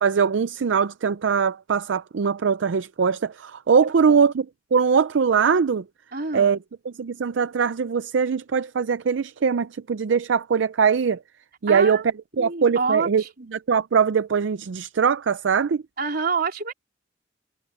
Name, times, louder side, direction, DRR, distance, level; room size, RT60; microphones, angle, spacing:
voice 1, 0.0-4.5 4.7-5.8 6.3-6.6 6.9-11.2 11.6-12.0 12.4-13.2 13.5-15.8, right 6 dB, 75° right, 0.5 m, -21 dB
voice 2, 6.1-6.6 11.7-12.1 12.4-13.5 16.0-16.7, right 4 dB, 55° right, 3.9 m, -28 dB
head